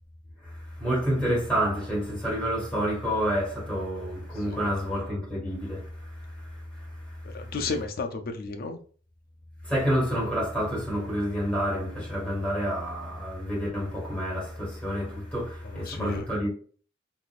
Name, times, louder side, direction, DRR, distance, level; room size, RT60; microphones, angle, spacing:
voice 1, 0.4-7.5 9.6-16.5, equal, 5° left, 1.6 m, -29 dB
voice 2, 4.3-4.7 7.2-8.8 15.6-16.3, left 4 dB, 50° left, 0.5 m, -33 dB
3.8 x 2.5 x 2.4 m
head